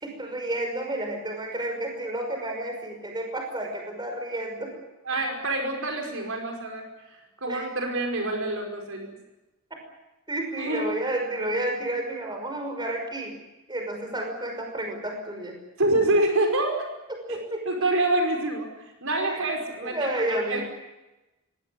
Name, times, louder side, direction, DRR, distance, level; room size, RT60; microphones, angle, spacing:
voice 1, 0.0-4.7 7.5-7.7 9.7-9.8 10.3-13.3 13.7-15.6 17.1-17.7 19.2-19.5 19.8-20.6, right 1 dB, 20° right, 3 dB, 5.6 m, -31 dB
voice 2, 5.1-6.9 7.4-9.1 10.6-10.9 15.8-16.9 17.3-18.7 19.0-20.6, right 2 dB, 65° right, 3 dB, 5.4 m, -26 dB
23.5 x 17.5 x 9.9 m, 1.0 s
head